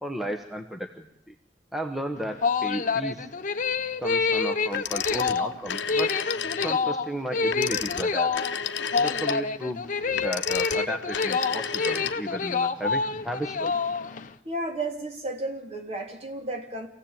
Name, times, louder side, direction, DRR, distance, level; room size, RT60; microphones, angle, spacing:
voice 1, 0.0-1.3 1.7-3.3 4.0-6.1 6.6-8.3 8.9-13.7, right 1 dB, ahead, 3 dB, 1.2 m, -34 dB
sound 1, 2.2-14.3, left 4 dB, 45° left, 1.0 m, -27 dB
Telephone, 4.7-6.8 7.4-12.5, left 8 dB, 70° left, 1.0 m, -32 dB
voice 2, 14.4-16.9, right 2 dB, 35° right, 4 dB, 3.1 m, -33 dB
26.0 x 16.5 x 8.9 m, 0.77 s
head